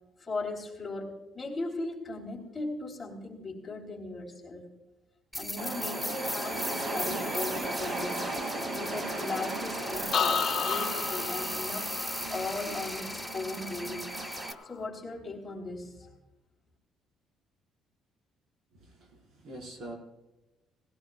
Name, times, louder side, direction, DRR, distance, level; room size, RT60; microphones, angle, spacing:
voice 1, 0.2-4.7 5.4-8.3 8.7-11.9 12.3-14.1 14.6-16.1, left 3 dB, 15° left, -1 dB, 3.4 m, -38 dB
sound 1, 5.3-14.5, left 1 dB, ahead, 0.7 m, -37 dB
sound 2, 5.6-14.5, right 2 dB, 45° right, 2.4 m, -37 dB
sound 3, 10.1-13.9 14.3-14.8, left 6 dB, 40° left, 1.3 m, -33 dB
voice 2, 18.7-19.9, right 1 dB, 60° right, 1 dB, 4.9 m, -45 dB
19.0 x 16.5 x 2.4 m, 1.0 s
cardioid pair, 140°, 0 cm